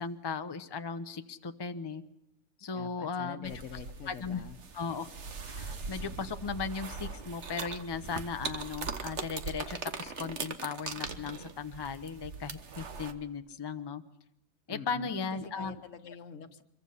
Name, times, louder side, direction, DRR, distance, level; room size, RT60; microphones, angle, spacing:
voice 1, 0.0-2.0 2.6-3.5 4.1-4.4 4.7-5.1 5.5-14.0 14.7-15.8, left 5 dB, 25° left, 9 dB, 0.7 m, -37 dB
voice 2, 2.7-4.6 14.7-16.6, left 7 dB, 80° left, 10 dB, 1.4 m, -45 dB
sound 1, 3.4-13.1, right 5 dB, 65° right, 1.5 m, -40 dB
24.5 x 22.5 x 5.7 m, 0.82 s
omnidirectional pair, 1.3 m